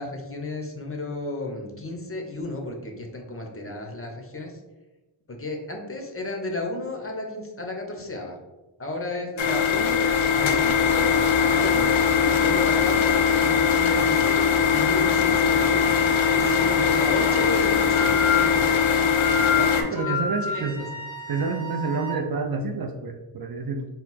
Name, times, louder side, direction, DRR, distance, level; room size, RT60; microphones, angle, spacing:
voice 1, 0.0-4.5 5.3-8.4 8.8-12.0 12.3-15.9 16.3-19.1 19.9-20.7, left 2 dB, 25° left, 2 dB, 0.8 m, -33 dB
sound 1, 9.4-19.8, left 7 dB, 70° left, 0.7 m, -21 dB
Wind instrument woodwind instrument, 15.8-22.2, left 4 dB, 10° left, 1.2 m, -31 dB
voice 2, 16.4-16.9 19.6-20.9 21.3-23.9, right 4 dB, 50° right, 5 dB, 0.5 m, -29 dB
4.2 x 2.0 x 4.1 m, 1.1 s
cardioid pair, 60°, 49 cm